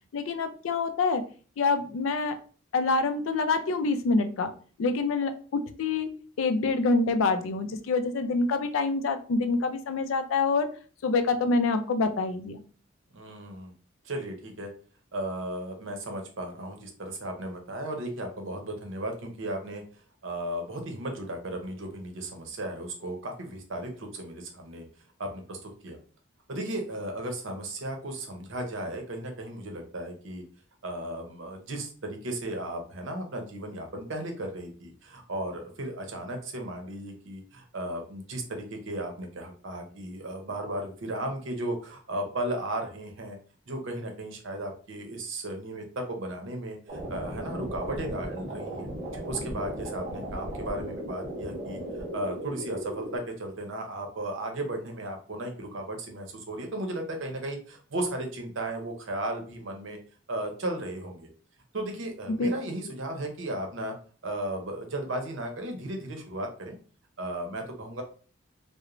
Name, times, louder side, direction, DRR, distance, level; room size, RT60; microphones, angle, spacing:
voice 1, 0.1-1.2 1.6-2.4 2.7-4.5 4.8-6.1 6.4-10.7 11.0-12.6 62.3-62.5, left 3 dB, 80° left, 9 dB, 0.4 m, -26 dB
voice 2, 13.1-13.7 14.0-14.7 15.1-19.8 20.2-24.8 25.2-26.0 26.5-30.4 30.8-43.4 43.7-48.9 49.3-60.0 60.3-61.3 61.7-63.9 64.2-66.8 67.2-68.0, right 1 dB, 70° right, 3 dB, 0.7 m, -35 dB
sound 1, 46.9-53.2, right 1 dB, 35° right, 0.7 m, -36 dB
3.0 x 2.0 x 2.4 m, 0.41 s
head